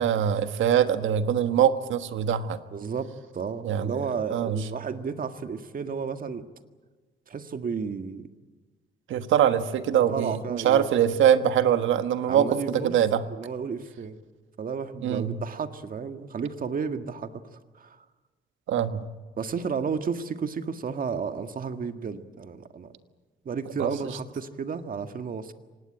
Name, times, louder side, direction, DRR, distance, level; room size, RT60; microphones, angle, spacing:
voice 1, 0.0-2.6 3.6-4.0 4.3-4.6 9.1-13.2 15.0-15.3 18.7-19.1 23.8-23.9, right 9 dB, 80° right, 10 dB, 1.4 m, -23 dB
voice 2, 2.7-6.5 7.3-8.4 10.1-10.8 12.3-13.0 13.3-14.2 14.6-17.4 17.8-18.1 19.4-22.9 23.5-25.5, right 5 dB, 45° right, 8 dB, 1.7 m, -32 dB
25.5 x 19.0 x 9.1 m, 1.3 s
cardioid pair, 90°, 20 cm